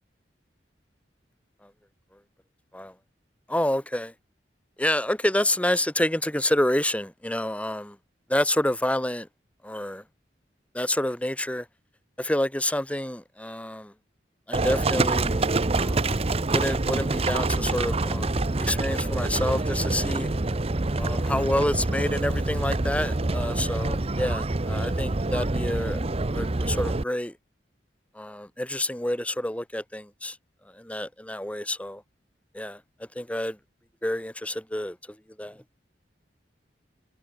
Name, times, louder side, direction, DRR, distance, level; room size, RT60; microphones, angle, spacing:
voice 1, 3.5-4.1 4.8-7.9 8.3-9.3 9.6-10.0 10.7-11.6 12.2-13.9 14.5-15.4 15.7-16.1 16.5-18.3 18.6-20.3 21.0-26.0 26.3-27.3 28.2-30.3 30.9-32.0 32.5-32.8 33.2-33.6 34.0-34.9 35.4-35.5, left 1 dB, 10° left, 2.0 m, -28 dB
Livestock farm animals working animals, 14.5-27.0, right 2 dB, 35° right, 0.9 m, -26 dB
head